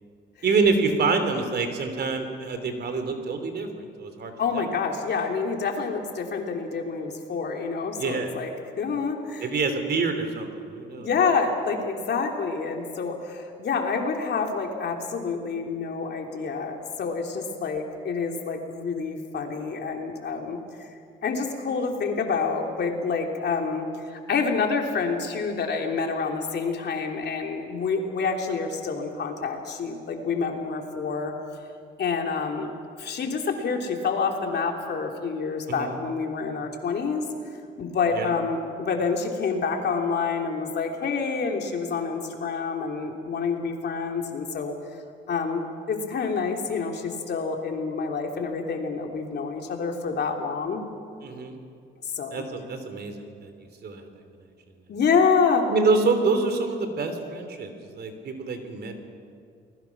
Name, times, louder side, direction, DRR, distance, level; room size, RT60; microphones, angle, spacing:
voice 1, 0.4-4.6 8.0-8.3 9.4-11.1 35.7-36.0 38.1-38.3 51.2-51.6 52.3-54.1 55.7-59.0, right 4 dB, 55° right, 7 dB, 3.3 m, -26 dB
voice 2, 4.4-8.5 8.8-9.5 11.0-20.9 21.2-31.3 32.0-37.2 37.8-44.7 45.3-50.8 52.1-52.4 54.9-55.7, left 5 dB, 60° left, 2 dB, 3.2 m, -27 dB
29.0 x 21.0 x 6.1 m, 2.4 s
cardioid pair, 90°, 20 cm